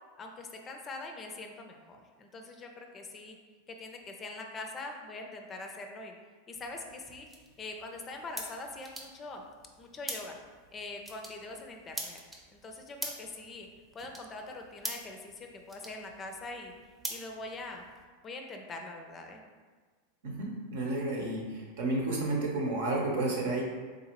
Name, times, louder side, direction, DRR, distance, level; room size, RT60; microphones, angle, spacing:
voice 1, 0.2-3.4 3.7-6.1 6.5-7.3 7.6-9.4 9.8-10.4 10.7-12.2 12.5-13.7 13.9-16.7 17.1-17.8 18.2-19.4, left 2 dB, 30° left, 3 dB, 0.5 m, -43 dB
sound 1, 6.5-18.0, right 1 dB, 10° right, 0.7 m, -45 dB
voice 2, 20.2-23.6, right 2 dB, 70° right, -1 dB, 0.9 m, -31 dB
3.8 x 2.7 x 2.9 m, 1.5 s
hypercardioid pair, 95°, 0 cm